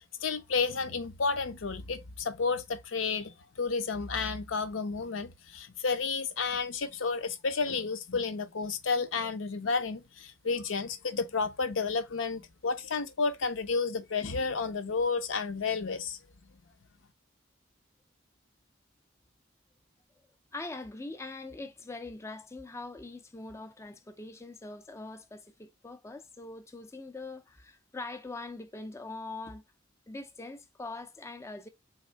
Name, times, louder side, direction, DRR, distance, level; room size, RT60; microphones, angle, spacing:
voice 1, 0.2-16.2, left 4 dB, 80° left, 0.7 m, -31 dB
voice 2, 20.5-29.6 30.1-31.7, left 2 dB, 15° left, 0.4 m, -42 dB
3.6 x 3.2 x 4.4 m
head